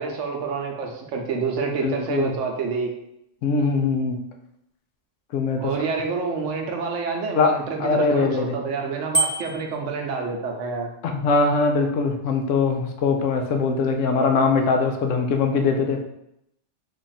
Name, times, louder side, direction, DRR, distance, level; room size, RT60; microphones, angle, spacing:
voice 1, 0.0-3.0 5.6-10.9, right 5 dB, 75° right, 2 dB, 1.0 m, -28 dB
voice 2, 1.7-2.4 3.4-4.2 5.3-5.7 7.4-8.6 11.0-16.0, left 4 dB, 80° left, 4 dB, 0.9 m, -22 dB
Bicycle bell, 9.1-9.8, right 2 dB, 20° left, 0.6 m, -24 dB
3.3 x 2.4 x 4.0 m, 0.79 s
omnidirectional pair, 1.3 m